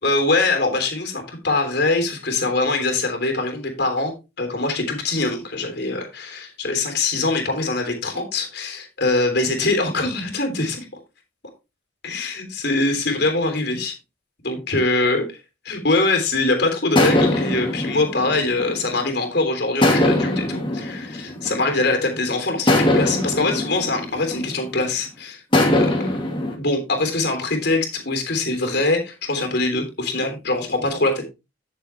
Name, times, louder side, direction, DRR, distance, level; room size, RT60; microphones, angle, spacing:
voice 1, 0.0-10.8 12.0-13.9 14.4-15.2 15.6-25.4 25.7-25.9 26.6-31.3, left 2 dB, 55° left, 4 dB, 3.4 m, -23 dB
sound 1, 17.0-19.2 19.8-22.0 22.7-24.9 25.5-26.6, left 1 dB, 25° left, 2.2 m, -21 dB
11.5 x 7.1 x 3.4 m, 0.26 s
head